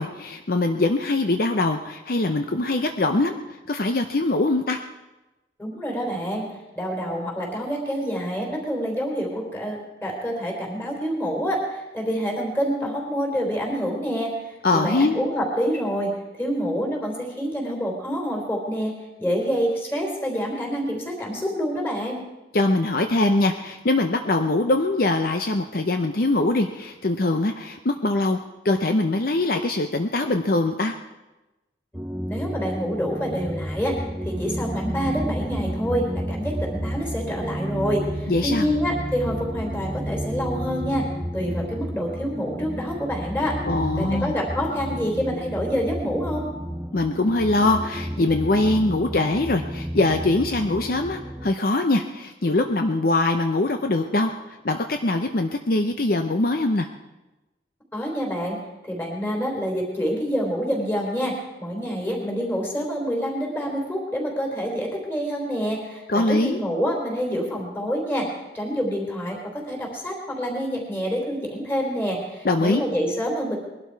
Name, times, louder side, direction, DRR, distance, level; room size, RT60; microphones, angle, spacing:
voice 1, 0.0-4.8 14.6-15.2 22.5-28.4 28.6-30.9 38.3-38.7 43.7-44.3 46.9-56.9 66.1-66.6 72.4-72.8, left 2 dB, 55° left, 6 dB, 0.7 m, -22 dB
voice 2, 5.6-16.1 16.4-22.2 32.3-41.1 41.3-43.6 44.0-46.5 57.9-58.6 58.8-68.3 68.5-73.6, equal, 10° left, 0 dB, 3.5 m, -27 dB
sound 1, 31.9-51.5, equal, 10° right, 0.6 m, -31 dB
20.5 x 12.0 x 4.7 m, 1.0 s
head